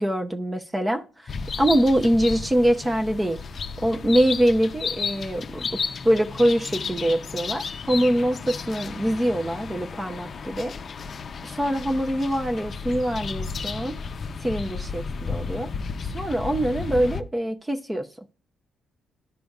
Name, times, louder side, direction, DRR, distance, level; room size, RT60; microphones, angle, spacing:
voice 1, 0.0-3.4 3.8-5.7 6.0-10.7 11.5-14.0 14.4-15.7 16.1-18.1, right 1 dB, 15° right, 6 dB, 0.6 m, -24 dB
sound 1, 1.3-17.2, left 5 dB, 45° left, 0.5 m, -33 dB
12.5 x 5.0 x 2.3 m, 0.38 s
cardioid pair, 90°, 0 cm